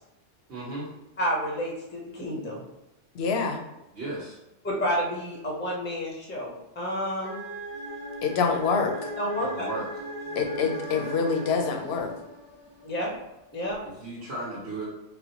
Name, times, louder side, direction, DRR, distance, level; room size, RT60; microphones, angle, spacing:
voice 1, 0.5-0.9 3.9-4.4 9.5-9.8 14.0-14.9, right 2 dB, 65° right, -8 dB, 1.2 m, -35 dB
voice 2, 1.2-2.6 4.6-7.4 9.1-9.7 12.8-13.1 13.5-13.8, equal, 15° left, -3 dB, 0.5 m, -30 dB
voice 3, 3.1-3.6 8.2-8.9 10.4-12.1, left 5 dB, 65° left, 3 dB, 0.8 m, -26 dB
sound 1, 7.2-12.1, right 1 dB, 80° right, 1.0 m, -39 dB
sound 2, 7.7-13.5, left 1 dB, 45° right, 1.2 m, -43 dB
4.1 x 2.1 x 2.8 m, 0.91 s
omnidirectional pair, 1.2 m